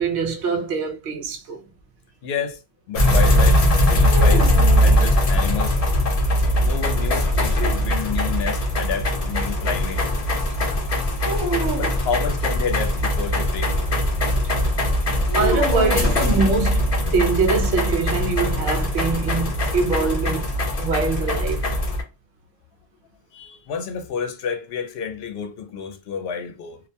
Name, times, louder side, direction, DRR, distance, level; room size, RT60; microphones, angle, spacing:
voice 1, 0.0-1.6 15.3-20.5 20.8-21.8, right 4 dB, 90° right, 0.9 m, -24 dB
voice 2, 2.2-2.6 2.9-4.6 4.8-5.8 6.6-10.1 11.7-13.7 23.3-26.8, left 6 dB, 75° left, 0.8 m, -29 dB
sound 1, 2.9-22.0, left 1 dB, 45° left, 0.6 m, -20 dB
sound 2, 4.1-5.6 7.3-8.4 11.3-12.1 15.3-16.9, right 3 dB, 30° right, 0.6 m, -30 dB
sound 3, 18.1-20.8, right 7 dB, 50° right, 1.1 m, -39 dB
2.4 x 2.1 x 2.6 m
omnidirectional pair, 1.1 m